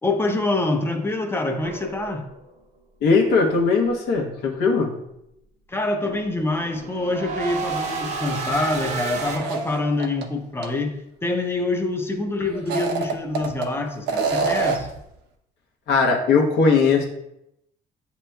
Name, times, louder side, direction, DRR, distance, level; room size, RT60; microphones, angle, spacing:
voice 1, 0.0-2.3 5.7-14.9, left 2 dB, 15° left, 5 dB, 0.6 m, -25 dB
sound 1, 1.6-2.5 6.2-9.4, right 4 dB, 40° right, 0.8 m, -31 dB
voice 2, 3.0-4.9 15.9-17.0, left 4 dB, 75° left, -1 dB, 1.0 m, -19 dB
sound 2, 9.2-10.2 10.6-10.7 12.5-13.7 14.1-15.0, right 4 dB, 85° right, 0.6 m, -25 dB
7.7 x 2.9 x 2.2 m, 0.81 s
cardioid pair, 110°, 17 cm